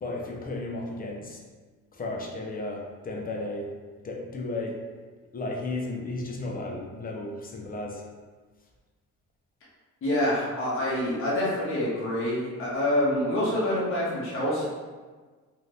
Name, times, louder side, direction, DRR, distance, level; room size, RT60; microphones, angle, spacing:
voice 1, 0.0-1.4 1.9-3.7 4.0-4.8 5.3-8.1, left 2 dB, 30° left, 0 dB, 0.6 m, -34 dB
voice 2, 10.0-14.7, left 1 dB, 45° left, -7 dB, 1.0 m, -26 dB
2.7 x 2.4 x 3.3 m, 1.4 s
cardioid pair, 90°, 30 cm